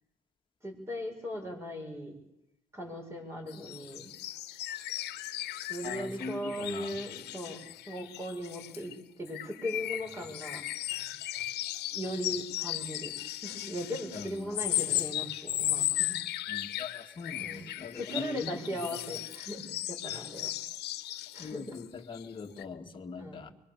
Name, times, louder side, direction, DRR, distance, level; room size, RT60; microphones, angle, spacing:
voice 1, 0.6-2.2 2.7-4.1 5.7-10.6 10.9-11.5 11.9-13.1 13.4-16.2 17.4-17.7 17.9-20.5 21.3-21.8 23.2-23.4, equal, 15° right, 1 dB, 7.0 m, -38 dB
sound 1, 3.5-8.9 9.3-21.9 22.1-22.3 22.6-22.7, left 14 dB, 75° left, 1.5 m, -36 dB
voice 2, 5.8-7.0 14.1-14.6 16.5-18.8 20.1-20.3 21.4-23.5, left 4 dB, 30° left, 2 dB, 2.2 m, -42 dB
24.5 x 24.0 x 7.0 m, 0.83 s
cardioid pair, 110°, 17 cm